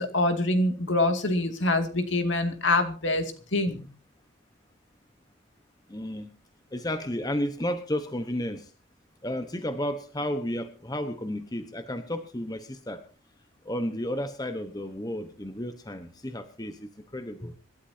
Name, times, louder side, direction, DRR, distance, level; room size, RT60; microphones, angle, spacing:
voice 1, 0.0-3.9, left 2 dB, 70° left, 6 dB, 2.4 m, -25 dB
voice 2, 5.9-6.3 6.7-8.7 9.2-13.0 13.6-17.5, left 1 dB, 20° left, 8 dB, 1.1 m, -32 dB
26.0 x 12.5 x 2.8 m, 0.36 s
head